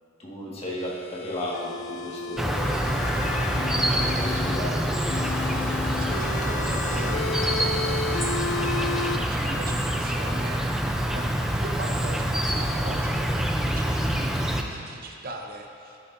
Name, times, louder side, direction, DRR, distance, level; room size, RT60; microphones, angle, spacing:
voice 1, 0.2-2.8 4.1-5.0 14.3-14.6, left 1 dB, 30° left, -5 dB, 1.7 m, -34 dB
sound 1, 0.7-4.6 5.1-9.2, left 4 dB, 90° left, 0.4 m, -33 dB
Insect, 2.4-14.6, right 1 dB, 5° right, 0.4 m, -26 dB
Trumpet, 2.9-8.0, left 3 dB, 50° left, 0.9 m, -41 dB
voice 2, 3.8-4.4 6.0-8.2 8.7-10.6 11.1-16.0, right 2 dB, 50° right, 2 dB, 0.7 m, -39 dB
13.0 x 10.5 x 2.6 m, 2.8 s
head